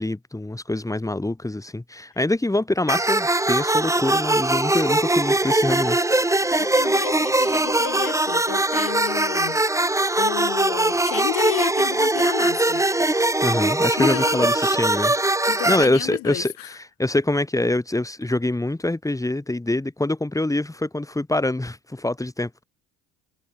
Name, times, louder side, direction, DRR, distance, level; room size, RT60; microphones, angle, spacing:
voice 1, 0.0-6.0 13.4-15.1 15.7-22.6, left 2 dB, 10° left, 7.5 m, -25 dB
sound 1, 2.9-15.8, right 2 dB, 10° right, 3.7 m, -21 dB
voice 2, 6.4-9.6 10.2-12.9 14.0-14.5 15.5-16.7, left 22 dB, 70° left, 6.5 m, -32 dB
supercardioid pair, 85°, 35 cm